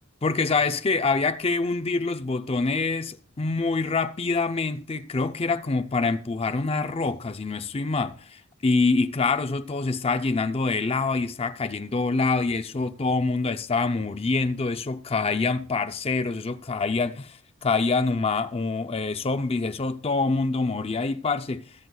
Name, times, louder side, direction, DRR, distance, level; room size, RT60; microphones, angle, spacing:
voice 1, 0.2-21.6, left 3 dB, 25° left, 0.4 m, -25 dB
21.5 x 7.8 x 2.3 m
head